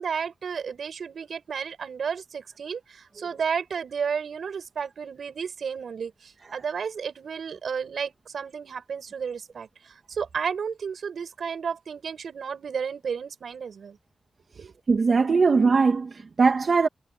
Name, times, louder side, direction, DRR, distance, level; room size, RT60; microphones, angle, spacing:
voice 1, 0.0-14.0 14.6-14.7, right 6 dB, 75° right, 7.6 m, -32 dB
voice 2, 14.9-16.9, right 4 dB, 50° right, 2.2 m, -20 dB
wide cardioid pair, 130°, 0 cm